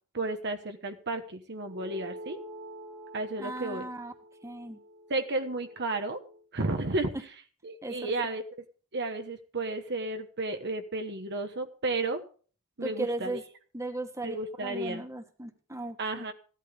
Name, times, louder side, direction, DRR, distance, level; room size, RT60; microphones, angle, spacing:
voice 1, 0.1-2.4 3.1-3.9 5.1-6.2 6.5-7.1 7.6-8.4 8.9-12.2 12.8-13.4 14.2-15.0 16.0-16.3, right 2 dB, 50° right, 6 dB, 1.2 m, -32 dB
sound 1, 1.6-6.4, right 1 dB, 85° right, 7.0 m, -47 dB
voice 2, 3.4-4.1 4.4-4.8 7.8-8.1 12.8-13.4 13.7-16.2, right 2 dB, 15° right, 6 dB, 1.7 m, -37 dB
15.5 x 12.0 x 3.7 m, 0.40 s
head